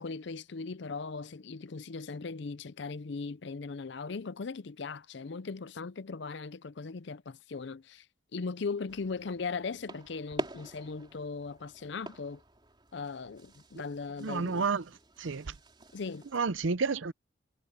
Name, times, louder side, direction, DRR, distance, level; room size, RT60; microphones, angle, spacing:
voice 1, 0.0-8.1 8.3-12.4 12.9-14.7 15.9-16.3, left 4 dB, 60° left, 0.5 m, -38 dB
sound 1, 8.9-16.4, right 1 dB, 25° right, 4.3 m, -46 dB
voice 2, 14.2-14.9 15.2-15.5 16.3-17.1, right 4 dB, 70° right, 0.6 m, -30 dB
head